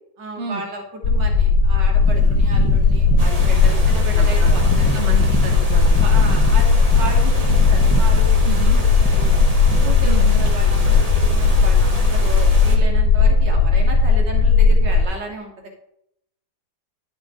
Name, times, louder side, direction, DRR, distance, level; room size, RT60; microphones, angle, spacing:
voice 1, 0.2-4.9 6.0-9.4 9.8-15.7, right 2 dB, 85° right, 1 dB, 2.2 m, -33 dB
sound 1, 1.0-15.1, left 4 dB, 60° left, 1.1 m, -16 dB
sound 2, 1.9-12.1, left 1 dB, 25° left, 0.3 m, -29 dB
sound 3, 3.2-12.8, right 2 dB, 25° right, 1.2 m, -31 dB
voice 2, 4.2-6.2 8.5-8.8 10.0-10.4, right 5 dB, 45° right, 1 dB, 1.5 m, -30 dB
11.0 x 5.7 x 3.8 m, 0.76 s
omnidirectional pair, 1.8 m